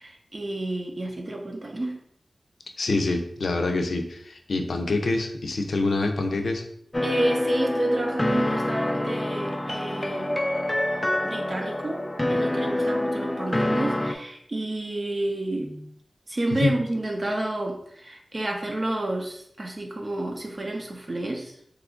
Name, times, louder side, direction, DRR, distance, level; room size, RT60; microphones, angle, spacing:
voice 1, 0.0-2.0 7.0-10.4 11.2-15.9 16.3-21.5, right 1 dB, 45° right, 1 dB, 0.6 m, -30 dB
voice 2, 2.8-6.6 16.5-16.8, left 2 dB, 80° left, 4 dB, 0.4 m, -26 dB
sound 1, 6.9-14.1, left 1 dB, 20° left, 0.3 m, -26 dB
3.0 x 2.4 x 3.6 m, 0.69 s
wide cardioid pair, 70°, 0 cm